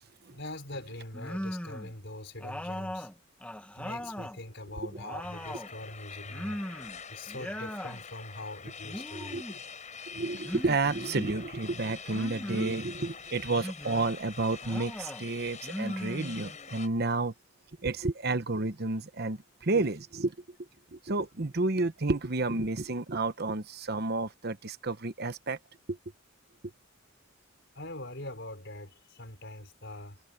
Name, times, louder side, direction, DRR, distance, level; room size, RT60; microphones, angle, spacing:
voice 1, 0.3-3.1 3.7-6.6 7.1-9.6 27.7-30.2, left 1 dB, 60° left, 5.3 m, -43 dB
sound 1, 1.1-1.9 2.4-4.4 4.8-5.7 6.3-7.0 7.3-8.0 8.8-9.6 10.4-11.4 12.1-12.8 13.5-14.1 14.6-15.2 15.6-16.7, equal, 5° left, 1.6 m, -39 dB
sound 2, 5.2-16.9, left 6 dB, 35° left, 7.1 m, -45 dB
voice 2, 10.1-17.3 17.8-20.3 20.9-25.6 25.9-26.0, right 3 dB, 50° right, 1.0 m, -31 dB
head